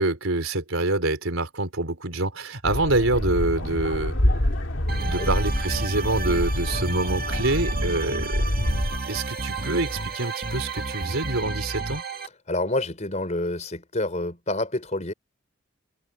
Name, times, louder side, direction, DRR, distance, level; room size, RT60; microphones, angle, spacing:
voice 1, 0.0-4.2 5.1-8.4 9.1-12.0, right 2 dB, 65° right, 3.9 m, -26 dB
sound 1, 2.6-9.0, left 1 dB, 60° left, 2.3 m, -26 dB
sound 2, 4.9-12.3, right 3 dB, 45° right, 1.7 m, -32 dB
voice 2, 12.5-15.1, left 2 dB, 30° left, 4.2 m, -28 dB
head